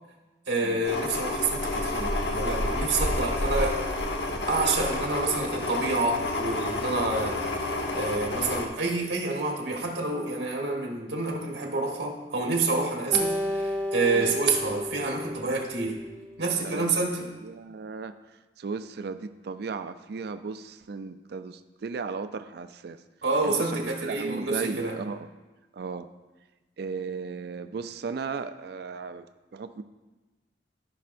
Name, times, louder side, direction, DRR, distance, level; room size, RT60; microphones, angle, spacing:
voice 1, 0.5-3.8 4.5-7.4 7.9-16.0 16.4-17.3 23.2-25.0, right 3 dB, 85° right, 0 dB, 1.3 m, -28 dB
sound 1, 0.8-8.7, left 2 dB, 70° left, 0.9 m, -29 dB
Acoustic guitar, 13.1-16.5, left 1 dB, 5° left, 0.9 m, -32 dB
voice 2, 17.4-23.0 23.4-25.3 25.7-26.1 26.8-29.3 29.5-29.8, right 5 dB, 65° right, 10 dB, 0.4 m, -36 dB
15.0 x 5.7 x 2.5 m, 1.2 s
head